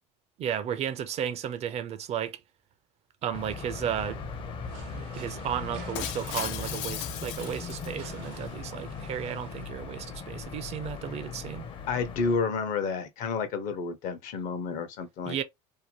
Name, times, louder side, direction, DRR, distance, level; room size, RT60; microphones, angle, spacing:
voice 1, 0.4-2.4 3.2-4.2 5.0-11.7 15.3-15.4, right 9 dB, 45° right, 0.5 m, -34 dB
sound 1, 3.3-12.4, left 5 dB, 35° left, 0.6 m, -39 dB
sound 2, 4.6-9.7, right 6 dB, 80° right, 0.7 m, -50 dB
Shatter, 5.9-8.3, left 13 dB, 85° left, 0.4 m, -37 dB
voice 2, 11.9-15.4, left 5 dB, 65° left, 0.8 m, -30 dB
2.7 x 2.2 x 2.9 m
supercardioid pair, 105°, 15 cm